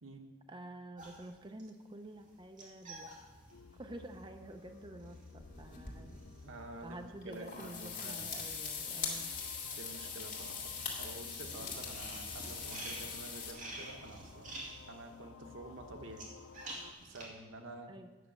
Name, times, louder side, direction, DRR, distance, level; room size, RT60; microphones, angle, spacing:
voice 1, 0.5-3.1 3.8-6.2 6.8-9.3 17.9-18.1, right 1 dB, 25° right, 6 dB, 0.6 m, -49 dB
sound 1, 1.0-8.5 8.7-17.3, right 1 dB, 40° right, 2.3 m, -50 dB
sound 2, 3.5-16.9, left 4 dB, 85° left, 0.6 m, -55 dB
sound 3, 5.4-6.2 7.2-13.5, left 5 dB, 45° left, 2.2 m, -42 dB
voice 2, 6.4-8.4 9.6-16.3 17.0-17.9, right 2 dB, 90° right, 5 dB, 1.1 m, -49 dB
9.2 x 6.4 x 7.1 m, 1.2 s
head